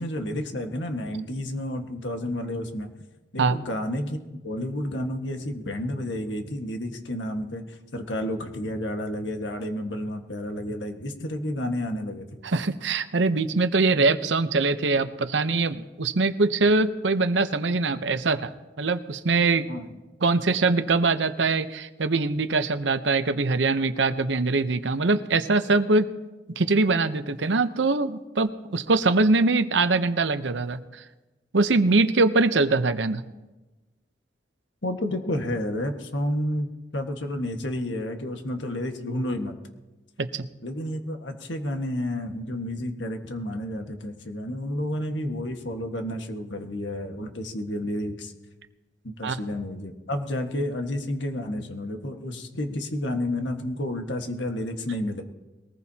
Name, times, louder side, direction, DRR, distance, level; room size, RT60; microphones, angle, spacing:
voice 1, 0.0-2.9 3.3-12.4 19.7-20.0 34.8-39.6 40.6-48.3 49.0-55.2, left 1 dB, 90° left, 5 dB, 1.6 m, -31 dB
voice 2, 12.4-19.7 20.2-26.1 26.5-30.8 31.5-33.2 40.2-40.5 49.2-49.4, right 3 dB, 85° right, 11 dB, 0.8 m, -23 dB
21.5 x 19.5 x 2.9 m, 1.1 s
head